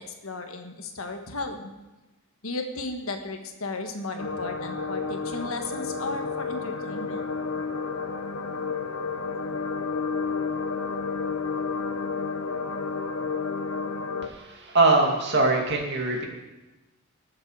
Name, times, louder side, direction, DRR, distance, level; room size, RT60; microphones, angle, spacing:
voice 1, 0.0-1.7 2.4-7.3, left 3 dB, 70° left, 5 dB, 1.5 m, -35 dB
sound 1, 4.2-14.3, left 4 dB, 90° left, 1.0 m, -31 dB
voice 2, 14.5-16.3, right 2 dB, 50° right, 1 dB, 2.3 m, -22 dB
19.0 x 7.6 x 4.8 m, 1.1 s
head